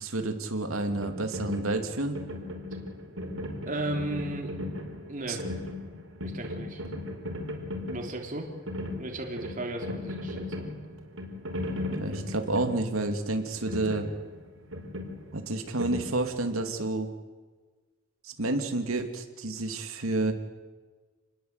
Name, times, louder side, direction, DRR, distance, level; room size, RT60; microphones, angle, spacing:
voice 1, 0.0-2.2 5.3-5.4 11.9-14.1 15.3-17.1 18.2-20.3, right 2 dB, 85° right, 5 dB, 2.7 m, -30 dB
sound 1, 0.9-16.7, left 1 dB, 70° right, 5.1 m, -37 dB
voice 2, 3.6-4.6 5.1-5.4 6.2-6.8 7.9-8.5 9.0-10.6, right 1 dB, 40° right, 1 dB, 3.4 m, -35 dB
29.0 x 21.0 x 8.2 m, 1.4 s
head